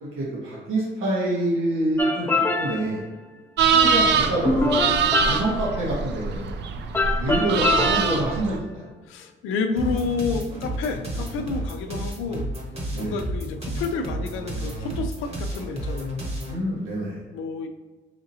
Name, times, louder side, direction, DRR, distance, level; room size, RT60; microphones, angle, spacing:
voice 1, 0.0-3.0 3.7-4.8 5.1-6.5 7.2-8.9 12.9-13.2 16.5-17.2, right 1 dB, 90° right, -7 dB, 1.2 m, -26 dB
sound 1, 2.0-3.1 4.5-5.9 6.9-8.4, left 3 dB, 10° left, 0.4 m, -25 dB
sound 2, 3.6-8.6, right 6 dB, 60° right, 0.4 m, -23 dB
voice 2, 9.1-12.5 13.0-16.2 17.3-17.7, left 4 dB, 90° left, 6 dB, 0.4 m, -29 dB
sound 3, 9.8-16.6, right 1 dB, 30° right, 1.0 m, -31 dB
4.9 x 2.7 x 2.7 m, 1.2 s
cardioid pair, 90°, 20 cm